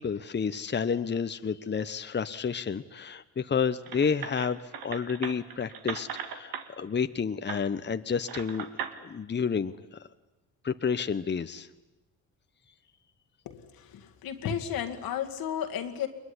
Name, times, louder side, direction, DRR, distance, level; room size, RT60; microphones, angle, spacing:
voice 1, 0.0-8.6 9.0-10.0 10.6-11.7, left 6 dB, 30° left, 10 dB, 1.0 m, -30 dB
sound 1, 3.9-6.7 7.5-7.6 8.3-9.0, right 8 dB, 85° right, 2.0 m, -38 dB
voice 2, 13.5-16.1, left 9 dB, 85° left, 5 dB, 2.3 m, -33 dB
22.0 x 21.5 x 10.0 m, 1.1 s
cardioid pair, 75°, 35 cm